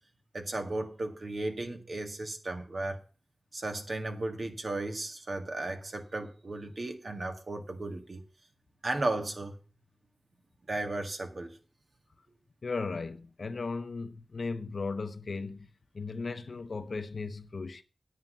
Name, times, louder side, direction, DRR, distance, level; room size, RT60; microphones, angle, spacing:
voice 1, 0.3-3.0 3.5-8.2 8.8-9.5 10.7-11.6, right 2 dB, 60° right, 1.9 m, -35 dB
voice 2, 12.6-17.8, left 4 dB, 70° left, 0.9 m, -36 dB
9.5 x 8.2 x 5.5 m
cardioid pair, 45°, 0 cm